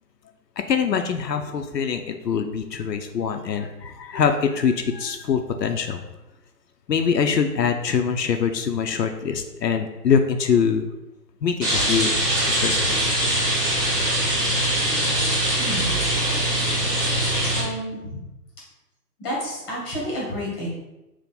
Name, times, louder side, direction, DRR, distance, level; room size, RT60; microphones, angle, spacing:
voice 1, 0.7-6.1 6.9-10.9 11.4-12.2 12.5-12.9, left 6 dB, 80° left, 5 dB, 0.6 m, -23 dB
Rain, 11.6-17.6, right 1 dB, 20° right, 1.4 m, -22 dB
voice 2, 17.5-18.2 19.2-20.7, equal, 15° left, -5 dB, 1.0 m, -30 dB
3.5 x 2.6 x 4.0 m, 0.97 s
figure-of-eight pair, 135°, 49 cm